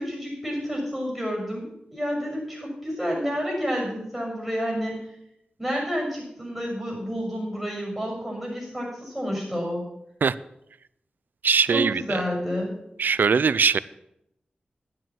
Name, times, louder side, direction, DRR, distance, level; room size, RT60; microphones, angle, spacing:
voice 1, 0.0-5.0 5.6-9.8 11.7-12.8, equal, ahead, -1 dB, 6.4 m, -29 dB
voice 2, 11.4-12.2 13.0-13.8, right 5 dB, 80° right, 18 dB, 0.4 m, -21 dB
11.0 x 7.7 x 7.5 m, 0.80 s
wide cardioid pair, 75°, 3 cm